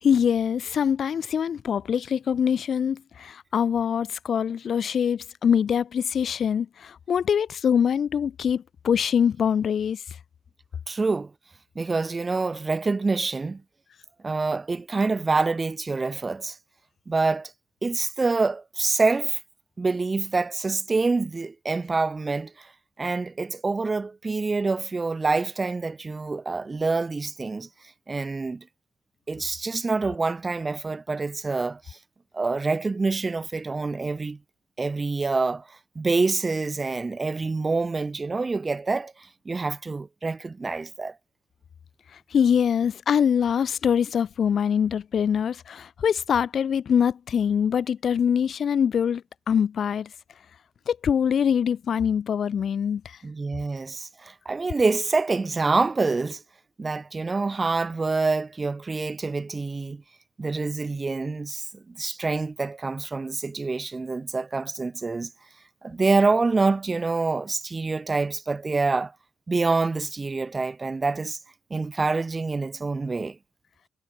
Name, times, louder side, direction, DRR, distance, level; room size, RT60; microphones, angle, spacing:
voice 1, 0.0-10.0 42.1-50.1 50.9-53.2, left 8 dB, 55° left, 2.9 m, -24 dB
voice 2, 10.9-11.3 11.8-13.6 14.2-16.6 17.1-17.5 17.8-19.4 19.8-22.7 23.0-27.7 28.1-28.7 29.3-32.0 32.3-34.4 34.8-41.2 53.2-56.4 56.8-60.0 60.4-65.3 65.8-69.1 69.5-71.4 71.7-73.4, right 3 dB, 25° right, 5.7 m, -26 dB
cardioid pair, 90°, 0 cm